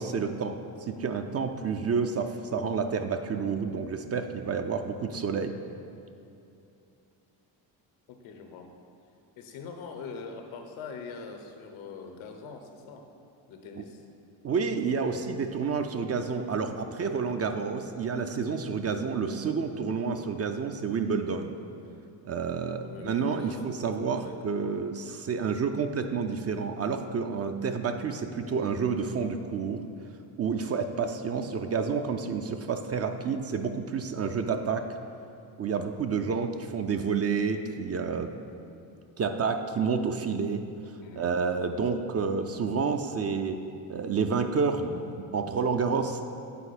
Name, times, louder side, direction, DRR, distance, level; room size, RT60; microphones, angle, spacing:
voice 1, 0.0-5.6 14.4-21.6 22.2-29.8 30.4-34.9 35.6-38.3 39.2-43.6 43.9-46.2, right 5 dB, 35° right, 7 dB, 0.4 m, -29 dB
voice 2, 8.1-8.7 9.4-13.1 13.5-14.1 15.0-15.3 22.8-23.8 24.2-24.4 41.0-41.3, left 5 dB, 80° left, 4 dB, 0.9 m, -43 dB
8.2 x 4.4 x 4.2 m, 2.7 s
cardioid pair, 80°, 46 cm